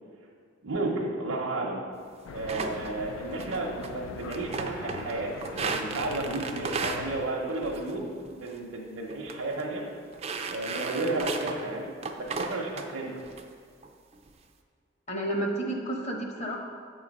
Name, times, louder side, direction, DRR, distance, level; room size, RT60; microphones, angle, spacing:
voice 1, 0.6-1.8 2.3-9.8 10.5-11.9 12.2-13.2, right 2 dB, 75° right, -3 dB, 0.7 m, -32 dB
sound 1, 2.2-7.3, left 5 dB, 80° left, 0.3 m, -42 dB
sound 2, 2.5-2.9 3.4-3.9 4.2-5.1 5.4-7.0 7.6-8.0 8.2-8.6 9.1-9.3 9.6-9.7 10.1-11.6 12.0-12.8 13.3-13.4 13.8-14.3, right 4 dB, 30° right, 0.4 m, -34 dB
voice 2, 15.1-16.6, right 1 dB, 35° left, 1 dB, 0.9 m, -31 dB
7.9 x 3.8 x 5.2 m, 2.2 s
head